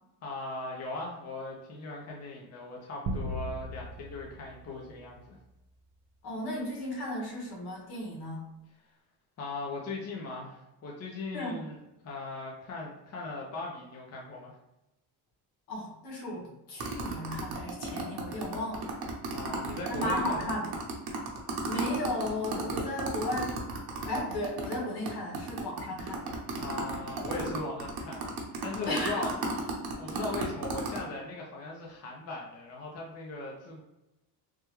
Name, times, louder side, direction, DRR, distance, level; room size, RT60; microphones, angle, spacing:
voice 1, 0.2-5.4 9.4-11.8 12.0-14.5 19.3-20.6 26.5-28.3 28.6-29.3 29.9-33.8, left 3 dB, 40° left, -2 dB, 0.6 m, -39 dB
sound 1, 3.1-5.6, right 1 dB, 40° right, 0.4 m, -38 dB
voice 2, 6.2-8.4 11.3-11.6 15.7-18.9 19.9-20.7 21.7-23.6 24.0-26.3 28.9-29.2, left 1 dB, 70° left, -2 dB, 1.4 m, -34 dB
sound 2, 16.8-24.8 25.1-25.2 25.3-31.0, right 3 dB, 65° right, 0.9 m, -34 dB
3.4 x 2.2 x 3.1 m, 0.94 s
cardioid pair, 135°, 40 cm